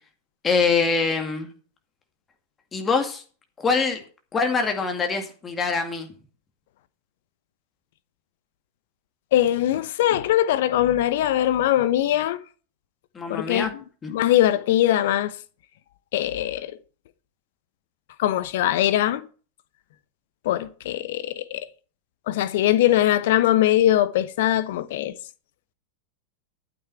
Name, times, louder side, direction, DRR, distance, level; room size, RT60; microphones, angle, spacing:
voice 1, 0.4-1.5 2.7-3.2 3.6-4.0 4.3-6.1 13.1-13.7 14.0-14.1, left 4 dB, 20° left, 2.0 m, -24 dB
voice 2, 9.3-12.4 13.3-13.7 14.1-15.4 16.1-16.8 18.2-19.2 20.4-21.7 22.3-25.1, left 12 dB, 55° left, 0.8 m, -21 dB
12.0 x 9.2 x 4.5 m
figure-of-eight pair, 90°, 0 cm